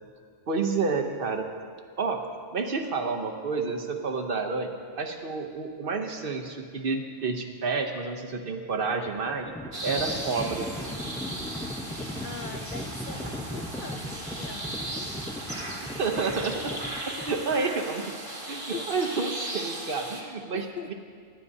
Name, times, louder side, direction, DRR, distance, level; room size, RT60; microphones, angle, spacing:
voice 1, 0.5-1.5 2.0-2.2 2.5-4.7 5.0-9.5 9.8-10.7 16.0-16.8 17.1-18.2 18.5-20.9, right 4 dB, 55° right, 4 dB, 0.9 m, -29 dB
Livestock farm animals working animals, 8.8-17.7, equal, 5° left, 0.4 m, -38 dB
sound 1, 9.7-20.2, right 1 dB, 30° right, 1.2 m, -37 dB
voice 2, 12.2-15.1 17.2-17.6 18.4-19.3 20.5-20.9, left 6 dB, 60° left, 5 dB, 0.5 m, -42 dB
18.0 x 11.0 x 2.7 m, 2.1 s
omnidirectional pair, 1.2 m